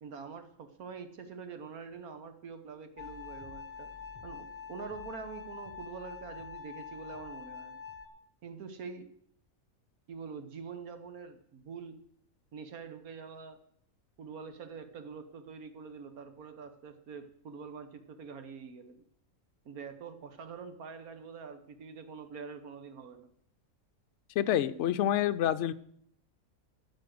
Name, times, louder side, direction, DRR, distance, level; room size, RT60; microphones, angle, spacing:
voice 1, 0.0-3.9 4.2-7.8 8.4-9.1 10.1-12.0 12.5-13.6 14.2-19.0 19.6-23.3, right 5 dB, 80° right, 9 dB, 1.6 m, -45 dB
sound 1, 3.0-8.1, left 6 dB, 30° left, 1.0 m, -45 dB
voice 2, 24.4-25.7, left 11 dB, 65° left, 12 dB, 0.8 m, -27 dB
13.5 x 5.3 x 7.7 m, 0.67 s
omnidirectional pair, 1.5 m